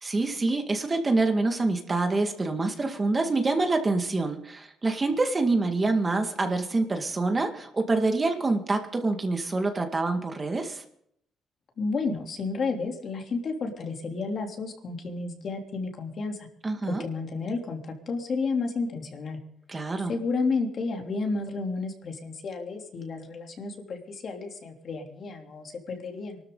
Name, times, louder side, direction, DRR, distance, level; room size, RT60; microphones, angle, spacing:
voice 1, 0.0-10.8 16.6-17.0 19.7-20.1, right 3 dB, 25° right, 5 dB, 2.0 m, -26 dB
voice 2, 11.8-16.5 16.8-19.4 20.1-26.4, left 4 dB, 50° left, 2 dB, 3.2 m, -31 dB
24.0 x 13.0 x 4.0 m, 0.70 s
cardioid pair, 110°, 0 cm